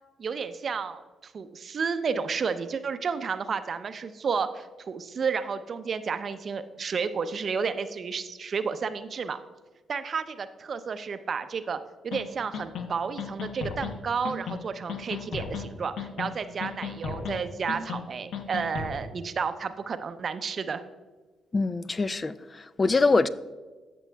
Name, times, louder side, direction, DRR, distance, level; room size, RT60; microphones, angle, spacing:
voice 1, 0.2-9.4 9.9-20.8, right 5 dB, 55° right, 0.5 m, -31 dB
sound 1, 12.1-12.2 12.5-12.9 13.2-13.9 14.2-14.6 14.9-15.6 16.0-16.3 16.6-17.4 17.7-18.0 18.3-19.0, left 6 dB, 70° left, 0.7 m, -34 dB
voice 2, 21.5-23.3, left 3 dB, 35° left, 0.3 m, -24 dB
14.5 x 6.1 x 2.3 m
hypercardioid pair, 50°, 0 cm